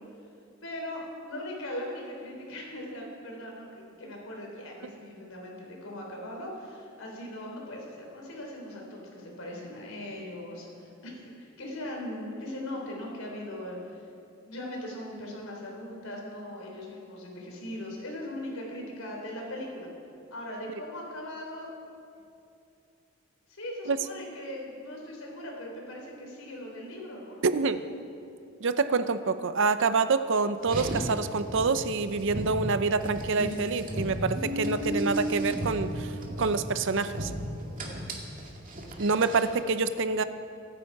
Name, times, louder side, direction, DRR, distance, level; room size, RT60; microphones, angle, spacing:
voice 1, 0.6-14.0 14.4-19.9 20.3-21.7 23.5-27.4, left 1 dB, 90° left, -1 dB, 4.0 m, -39 dB
voice 2, 27.4-27.8 28.6-37.3 39.0-40.2, right 4 dB, 65° right, 12 dB, 0.6 m, -27 dB
Car, 30.6-39.6, equal, 40° right, 2.2 m, -35 dB
24.0 x 9.9 x 4.7 m, 2.5 s
head